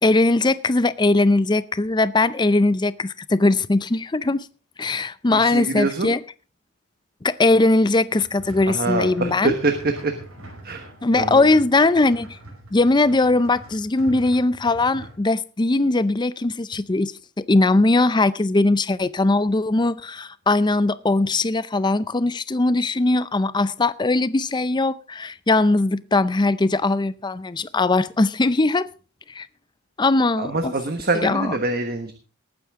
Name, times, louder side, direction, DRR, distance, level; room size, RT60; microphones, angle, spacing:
voice 1, 0.0-4.5 4.8-6.2 7.2-9.5 11.0-12.4 12.7-28.9 29.3-29.5 30.0-30.7 31.2-31.6, left 2 dB, 20° left, 0.5 m, -20 dB
voice 2, 5.3-6.1 8.7-10.2 10.6-10.9 11.1-11.5 30.4-32.1, right 3 dB, 45° right, 1.3 m, -25 dB
sound 1, 8.1-15.1, right 1 dB, 85° right, 5.2 m, -43 dB
19.0 x 8.9 x 3.6 m
head